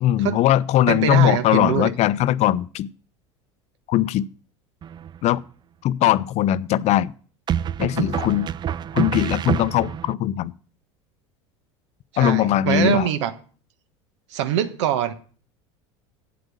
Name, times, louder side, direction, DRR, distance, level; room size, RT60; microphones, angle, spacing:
voice 1, 0.0-2.9 3.9-4.3 5.2-5.4 5.8-7.1 7.8-8.5 8.9-10.5 12.2-13.1, left 12 dB, 45° left, 0.5 m, -20 dB
voice 2, 0.9-1.9 12.2-13.3 14.3-15.1, right 11 dB, 75° right, 1.2 m, -23 dB
sound 1, 4.8-5.4 7.5-10.1, right 9 dB, 30° right, 0.4 m, -27 dB
8.5 x 8.0 x 7.0 m
hypercardioid pair, 85°, 15 cm